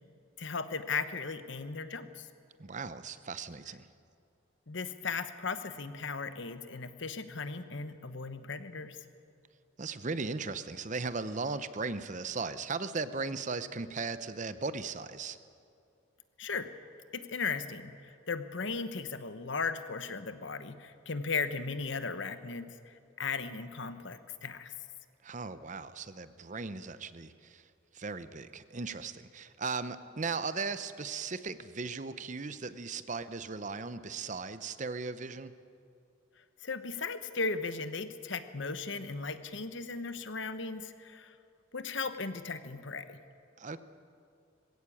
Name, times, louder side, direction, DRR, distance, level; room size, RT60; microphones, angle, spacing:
voice 1, 0.4-2.3 4.7-9.0 16.4-16.7 17.1-24.7 36.6-41.3 41.7-43.2, left 4 dB, 65° left, 11 dB, 1.1 m, -37 dB
voice 2, 2.6-3.9 9.8-15.4 25.2-27.6 27.9-35.5 43.6-43.8, right 4 dB, 35° right, 13 dB, 0.7 m, -37 dB
21.0 x 16.0 x 8.6 m, 2.5 s
head